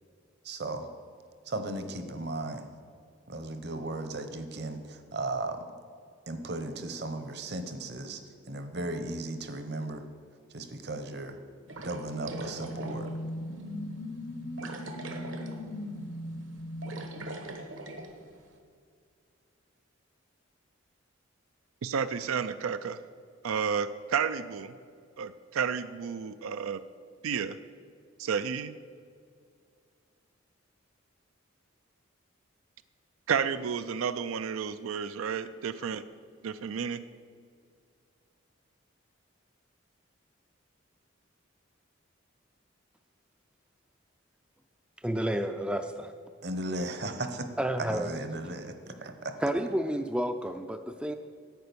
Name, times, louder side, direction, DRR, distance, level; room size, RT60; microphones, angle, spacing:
voice 1, 0.4-0.9 1.5-2.7 3.3-5.6 6.3-8.2 8.5-10.1 10.5-11.4 11.8-13.1 46.4-47.5 47.9-49.3, right 2 dB, 50° right, 8 dB, 0.9 m, -36 dB
sound 1, 11.7-18.2, left 1 dB, 70° left, 0.8 m, -40 dB
sound 2, 11.7-13.2 13.6-13.7 14.6-15.7 16.0-16.2 16.6-18.1, right 2 dB, 70° right, 1.2 m, -41 dB
voice 2, 21.8-23.0 23.4-24.8 25.2-26.8 27.2-27.6 28.2-28.7 33.3-36.0 36.4-37.0, right 6 dB, 90° right, 12 dB, 0.4 m, -31 dB
voice 3, 45.0-46.1 47.6-48.1 49.4-51.1, right 1 dB, 5° right, 7 dB, 0.3 m, -30 dB
10.5 x 8.7 x 6.9 m, 2.2 s
head